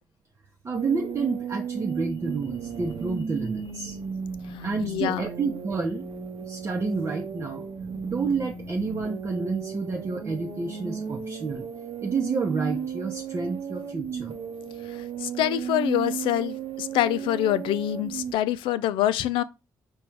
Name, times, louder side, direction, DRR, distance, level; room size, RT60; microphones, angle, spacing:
voice 1, 0.6-4.0 4.6-6.0 6.4-7.7 8.0-11.7 12.0-14.4, right 4 dB, 35° right, 0.7 m, -29 dB
sound 1, 0.7-18.3, right 7 dB, 70° right, 0.8 m, -35 dB
voice 2, 4.5-5.2 14.9-19.4, left 12 dB, 85° left, 0.3 m, -26 dB
4.9 x 2.3 x 4.5 m
cardioid pair, 75°, 8 cm